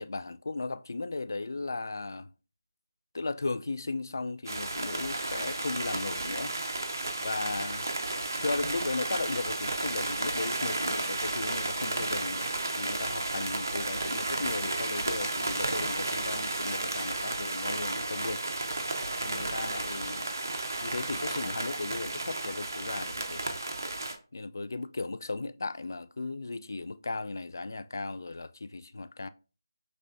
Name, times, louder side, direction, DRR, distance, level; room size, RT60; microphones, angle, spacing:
voice 1, 0.0-2.3 3.1-6.6 7.2-7.9 8.4-12.5 12.8-18.5 19.2-20.3 20.8-23.4 24.3-29.3, left 3 dB, 55° left, 0.3 m, -36 dB
sound 1, 4.5-24.2, right 2 dB, 50° right, 0.8 m, -33 dB
5.3 x 3.2 x 2.5 m
figure-of-eight pair, 160°, 2 cm